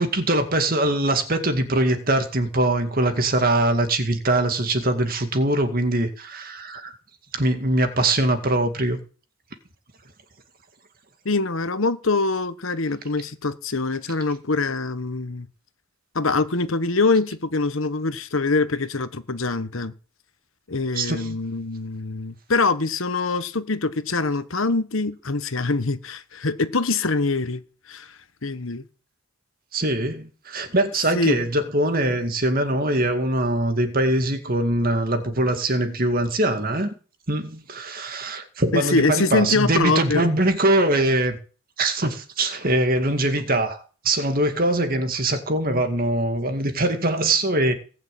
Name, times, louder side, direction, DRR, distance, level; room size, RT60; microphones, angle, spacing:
voice 1, 0.0-6.9 7.3-9.0 20.9-21.4 29.7-36.9 37.3-41.4 41.8-47.7, right 1 dB, 45° right, 2.2 m, -22 dB
voice 2, 11.2-15.5 16.1-19.9 20.7-27.6 27.9-28.8 31.1-31.4 38.7-40.3, left 3 dB, 70° left, 1.2 m, -24 dB
19.0 x 6.7 x 8.6 m
head